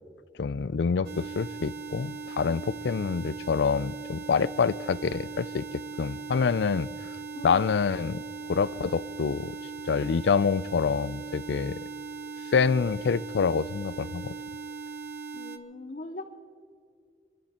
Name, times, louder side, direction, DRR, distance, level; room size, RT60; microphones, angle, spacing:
voice 1, 0.4-6.9 7.4-8.2 8.5-9.6 9.8-11.8 12.5-14.3, left 5 dB, 85° left, 20 dB, 0.4 m, -26 dB
sound 1, 1.0-15.6, right 3 dB, 60° right, 0.8 m, -39 dB
voice 2, 7.3-7.7 15.3-16.2, left 2 dB, 50° left, 3 dB, 0.9 m, -40 dB
25.5 x 11.5 x 4.3 m, 2.2 s
head